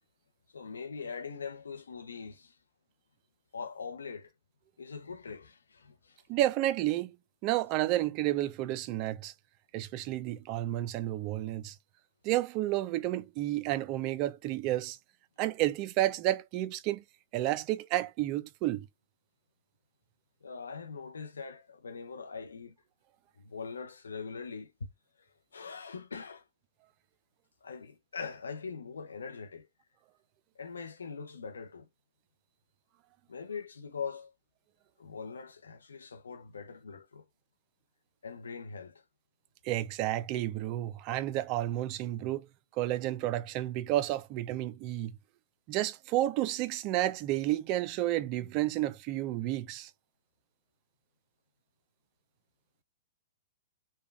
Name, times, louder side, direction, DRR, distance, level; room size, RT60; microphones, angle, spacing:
voice 1, 0.5-2.6 3.5-4.3 4.8-6.2 20.4-22.7 23.4-24.7 25.5-26.4 27.6-29.7 30.6-31.9 33.3-34.3 35.0-37.2 38.2-39.0, left 5 dB, 90° left, 0.5 m, -42 dB
voice 2, 6.3-7.2 7.4-9.3 9.7-11.8 12.2-15.0 15.4-17.0 17.3-18.9 39.6-42.5 42.8-45.2 45.7-49.9, right 14 dB, 40° right, 0.3 m, -31 dB
3.3 x 2.1 x 2.3 m
hypercardioid pair, 125°, 0 cm